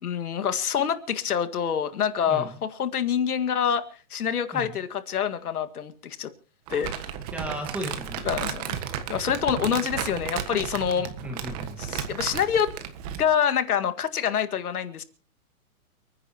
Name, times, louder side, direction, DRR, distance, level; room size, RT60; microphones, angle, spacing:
voice 1, 0.0-3.8 4.1-6.3 6.7-7.1 8.2-8.8 9.1-11.1 11.8-12.7 13.2-15.0, left 8 dB, 75° left, 9 dB, 1.9 m, -26 dB
voice 2, 2.3-2.6 4.5-4.8 7.3-8.4 11.0-11.8, equal, 5° right, 3 dB, 1.6 m, -35 dB
Crumpling crinkling, 6.7-13.3, right 9 dB, 25° right, 1.5 m, -33 dB
29.5 x 10.0 x 2.9 m, 0.40 s
hypercardioid pair, 165°, 45 cm